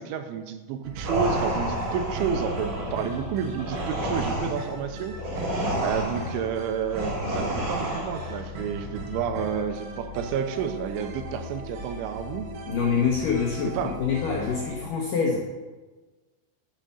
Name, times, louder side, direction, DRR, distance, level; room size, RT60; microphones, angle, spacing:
voice 1, 0.0-5.2 5.8-12.5 13.7-13.9, right 7 dB, 85° right, 8 dB, 3.1 m, -30 dB
sound 1, 0.8-14.8, left 1 dB, 65° right, 2.2 m, -38 dB
sound 2, 1.0-8.4, right 1 dB, 40° right, 4.3 m, -30 dB
voice 2, 12.7-15.4, left 6 dB, 85° left, -1 dB, 1.9 m, -25 dB
8.7 x 7.6 x 7.0 m, 1.3 s
omnidirectional pair, 5.6 m